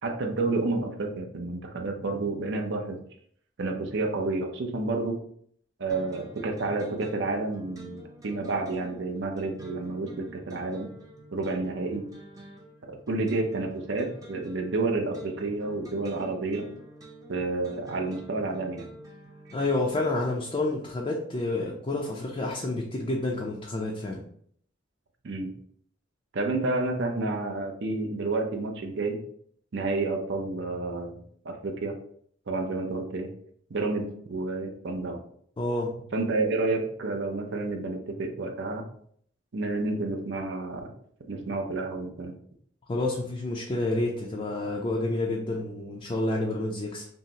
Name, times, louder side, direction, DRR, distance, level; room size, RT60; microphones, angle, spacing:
voice 1, 0.0-3.0 3.6-5.2 5.8-10.9 11.3-12.0 12.9-16.7 17.3-18.9 25.2-25.5 26.3-29.2 29.7-32.0 32.5-33.3 33.7-35.2 36.1-38.8 39.5-40.9 41.2-42.3, right 3 dB, 60° right, 4 dB, 0.6 m, -30 dB
sound 1, 5.9-20.7, equal, 15° right, 0.6 m, -48 dB
voice 2, 19.5-24.2 35.6-35.9 42.9-47.1, left 2 dB, 25° left, -1 dB, 0.4 m, -29 dB
5.5 x 2.0 x 2.8 m, 0.63 s
head